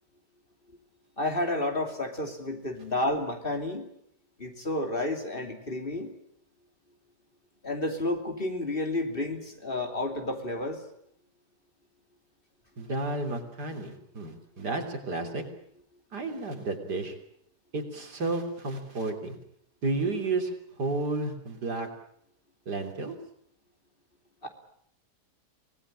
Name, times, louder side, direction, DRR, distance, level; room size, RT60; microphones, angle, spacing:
voice 1, 1.2-3.8 4.4-6.1 7.6-10.8 24.4-24.5, left 1 dB, 30° left, 5 dB, 3.0 m, -31 dB
voice 2, 12.8-15.4 16.1-17.2 17.7-19.4 19.8-20.5 20.8-21.9 22.7-23.1, right 3 dB, 75° right, 4 dB, 3.9 m, -32 dB
25.0 x 19.0 x 10.0 m, 0.71 s
omnidirectional pair, 1.8 m